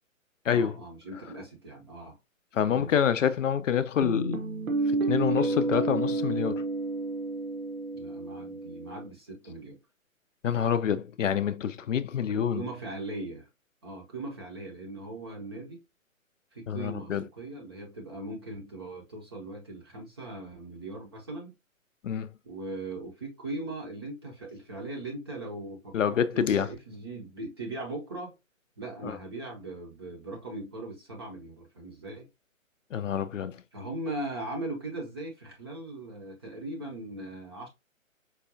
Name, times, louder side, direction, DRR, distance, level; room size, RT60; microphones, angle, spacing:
voice 1, 0.5-2.2 2.7-2.9 7.9-9.8 12.3-13.5 13.8-15.8 16.5-21.5 22.4-28.3 28.8-32.3 33.7-37.7, right 2 dB, 20° right, 0.6 m, -39 dB
voice 2, 2.5-4.4 4.9-6.6 10.4-12.6 16.7-17.2 22.0-22.3 25.9-26.7 29.0-29.2 32.9-33.6, left 8 dB, 65° left, 0.5 m, -27 dB
Guitar, 4.0-9.1, right 3 dB, 85° right, 1.0 m, -30 dB
4.7 x 2.2 x 2.6 m
figure-of-eight pair, 145°, 41 cm